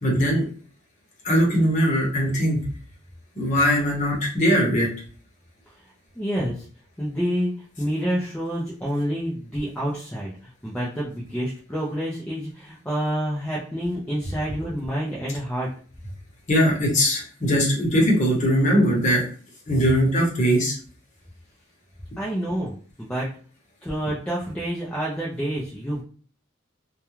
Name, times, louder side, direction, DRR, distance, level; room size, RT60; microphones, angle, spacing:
voice 1, 0.0-0.4 1.2-2.7 3.4-4.9 16.5-19.3 19.7-20.7, equal, 35° left, -3 dB, 0.9 m, -20 dB
voice 2, 6.2-6.6 7.0-15.7 22.2-23.3 23.8-26.0, equal, 5° left, -6 dB, 0.4 m, -28 dB
2.3 x 2.2 x 3.0 m, 0.43 s
head